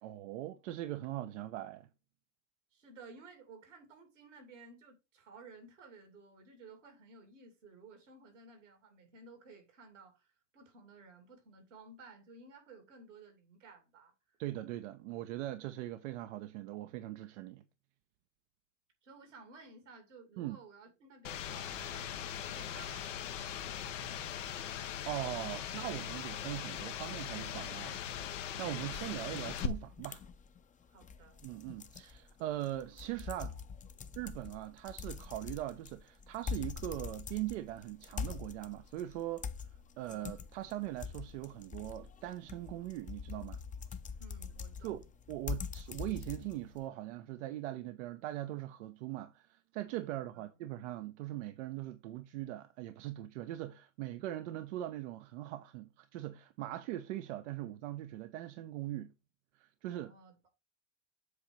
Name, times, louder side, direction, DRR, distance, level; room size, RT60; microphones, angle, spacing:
voice 1, 0.0-1.9 14.4-17.6 20.4-20.6 25.1-28.2 28.6-30.2 31.4-33.6 34.2-39.5 40.0-43.6 44.8-59.1 59.5-60.1, right 14 dB, 75° right, 0.7 m, -41 dB
voice 2, 2.7-10.3 10.5-14.1 19.0-24.4 30.9-31.4 44.2-45.1 50.1-50.6 59.9-60.5, right 4 dB, 90° right, 2.8 m, -56 dB
sound 1, 21.2-29.7, left 9 dB, 85° left, 0.9 m, -40 dB
sound 2, 28.9-46.8, left 6 dB, 20° left, 0.6 m, -44 dB
7.8 x 2.9 x 4.9 m
hypercardioid pair, 85°, 36 cm